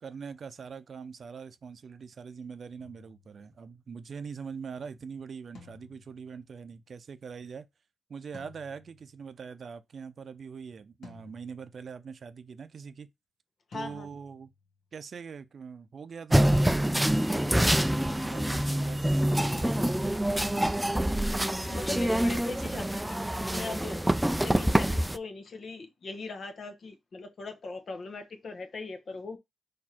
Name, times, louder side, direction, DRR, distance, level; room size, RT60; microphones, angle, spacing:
voice 1, 0.0-7.7 8.1-13.1 13.7-14.5 14.9-17.6 18.2-20.6 22.5-22.8, right 6 dB, 60° right, 0.6 m, -43 dB
sound 1, 2.8-3.8 5.5-6.7 8.3-9.5 11.0-12.2 13.7-14.9 16.5-17.4, left 4 dB, 80° left, 1.4 m, -54 dB
voice 2, 13.7-14.1 21.6-29.4, left 3 dB, 60° left, 1.0 m, -40 dB
sound 2, 16.3-25.2, right 1 dB, 10° right, 0.3 m, -26 dB
4.4 x 2.6 x 4.3 m
cardioid pair, 65°, 0 cm